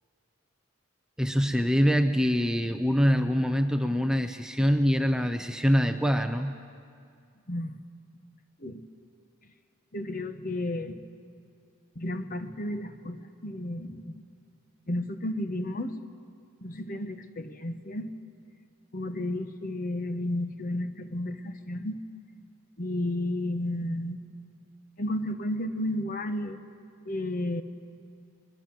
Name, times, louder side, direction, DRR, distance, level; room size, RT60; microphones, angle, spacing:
voice 1, 1.2-6.5, equal, 5° right, 6 dB, 0.5 m, -24 dB
voice 2, 7.5-7.8 8.6-8.8 9.9-11.0 12.0-14.2 14.9-15.9 16.6-18.1 18.9-22.0 22.8-24.2 25.0-26.6 27.1-27.6, left 1 dB, 40° left, 9 dB, 1.0 m, -32 dB
23.0 x 21.0 x 7.6 m, 2.3 s
head